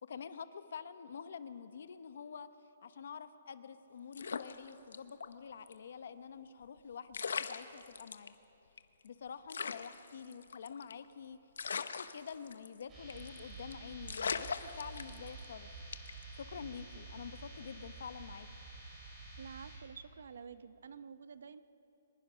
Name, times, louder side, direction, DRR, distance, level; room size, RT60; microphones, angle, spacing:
voice 1, 0.0-2.5 2.8-8.3 9.0-11.4 11.8-15.7 16.3-18.5, left 7 dB, 55° left, 12 dB, 0.9 m, -47 dB
sound 1, 4.1-5.3 5.7-5.8 6.8-6.9 7.1-8.3 8.8-8.9 9.1-9.2 9.5-11.1 11.6-12.8 13.1-13.4 13.7-13.8 14.1-15.5 15.9-16.2, left 5 dB, 85° left, 0.9 m, -39 dB
sound 2, 12.9-19.8, right 3 dB, 15° right, 5.5 m, -50 dB
voice 2, 19.4-21.6, right 6 dB, 65° right, 13 dB, 0.8 m, -49 dB
24.5 x 20.5 x 5.7 m, 3.0 s
hypercardioid pair, 175°, 0 cm